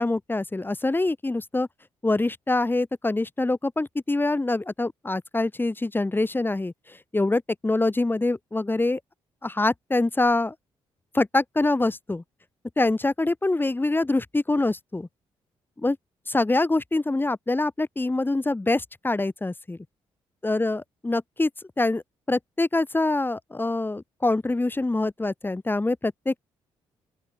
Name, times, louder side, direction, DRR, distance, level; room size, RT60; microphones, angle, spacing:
voice 1, 0.0-1.7 2.0-9.0 9.4-10.5 11.1-12.2 12.8-15.1 15.8-16.0 16.3-19.8 20.4-21.5 21.8-22.0 22.3-26.4, left 2 dB, 20° left, 2.6 m, -25 dB
open air
supercardioid pair, 60°, 11 cm